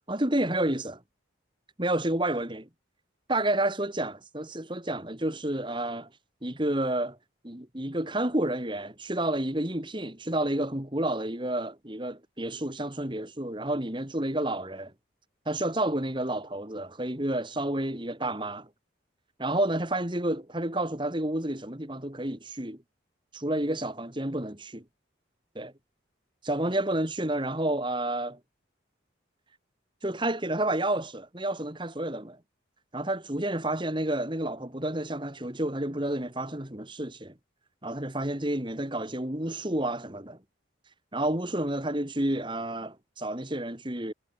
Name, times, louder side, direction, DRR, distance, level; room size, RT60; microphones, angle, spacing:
voice 1, 0.1-1.0 1.8-2.7 3.3-6.1 6.4-7.2 7.4-14.9 15.5-18.7 19.4-22.8 23.3-24.8 25.6-25.7 26.4-28.4 30.0-32.4 32.9-37.3 37.8-40.4 41.1-44.1, right 1 dB, 25° right, 2.2 m, -30 dB
head